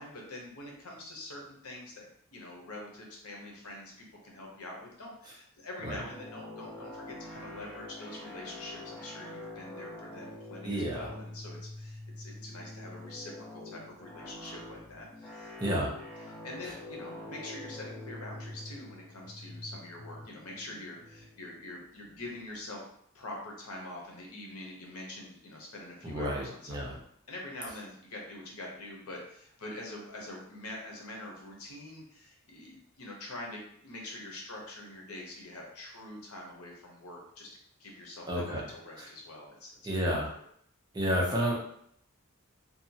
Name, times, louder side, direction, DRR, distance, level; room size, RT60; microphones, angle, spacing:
voice 1, 0.0-16.0 16.3-22.8 23.1-27.0 27.3-37.5 37.8-39.7, left 1 dB, 85° left, -1 dB, 0.7 m, -45 dB
sound 1, 6.1-22.6, left 1 dB, 15° left, 1.0 m, -46 dB
voice 2, 10.6-11.1 15.6-15.9 26.0-26.9 38.3-38.6 39.0-39.1 39.8-40.3 40.9-41.6, equal, 20° right, -3 dB, 0.5 m, -30 dB
2.8 x 2.2 x 2.6 m, 0.69 s
head